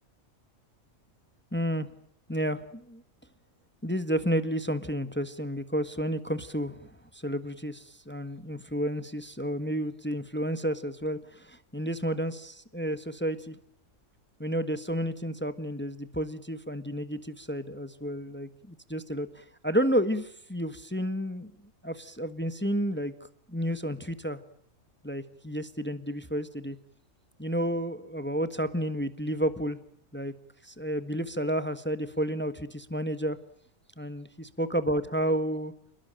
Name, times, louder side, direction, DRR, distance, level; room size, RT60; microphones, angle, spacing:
voice 1, 1.5-1.9 2.3-3.0 3.8-13.6 14.4-21.5 21.8-23.1 23.5-24.4 25.0-26.8 27.4-29.8 30.1-30.3 30.6-33.4 34.0-35.7, equal, 10° left, 11 dB, 1.4 m, -31 dB
29.0 x 20.5 x 9.0 m, 0.65 s
omnidirectional pair, 1.5 m